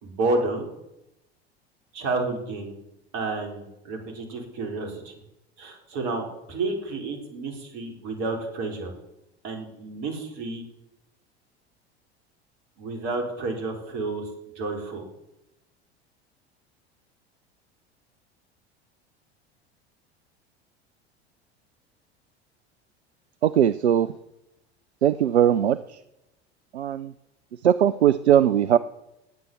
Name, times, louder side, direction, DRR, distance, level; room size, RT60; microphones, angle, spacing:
voice 1, 0.0-0.7 1.9-2.7 3.1-5.1 5.6-8.9 9.4-10.6 12.8-14.3 14.5-15.1, right 3 dB, 55° right, 4 dB, 4.6 m, -30 dB
voice 2, 23.4-24.1 25.0-25.8 26.7-27.1 27.6-28.8, right 10 dB, 80° right, 15 dB, 0.6 m, -19 dB
19.0 x 8.2 x 7.5 m, 0.89 s
figure-of-eight pair, 75°, 33 cm